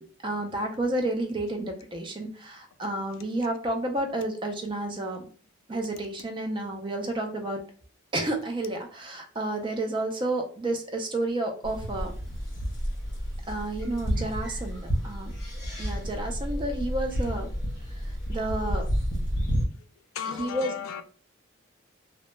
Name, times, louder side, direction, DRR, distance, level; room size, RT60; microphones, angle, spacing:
voice 1, 0.0-5.3 5.7-7.6 8.1-12.1 13.5-15.3 15.8-17.5 18.0-18.9 20.3-20.7, right 1 dB, 25° right, 0.3 m, -31 dB
sound 1, 11.6-19.7, equal, 40° left, 1.1 m, -30 dB
voice 2, 20.1-21.0, left 8 dB, 80° left, 0.3 m, -35 dB
2.1 x 2.0 x 3.0 m
head